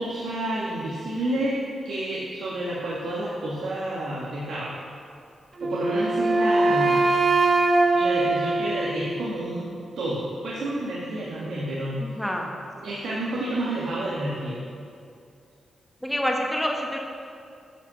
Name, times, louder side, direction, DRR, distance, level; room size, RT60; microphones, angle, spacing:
voice 1, 0.0-1.5 1.8-4.7 5.6-7.0 7.9-9.7 10.0-12.0 12.8-14.6, right 1 dB, 85° right, -7 dB, 1.8 m, -29 dB
Wind instrument woodwind instrument, 5.6-9.5, right 3 dB, 30° right, 0.7 m, -22 dB
voice 2, 12.2-12.5 16.0-17.0, equal, 5° left, 1 dB, 1.1 m, -26 dB
10.5 x 5.9 x 6.9 m, 2.4 s
wide cardioid pair, 155°, 0 cm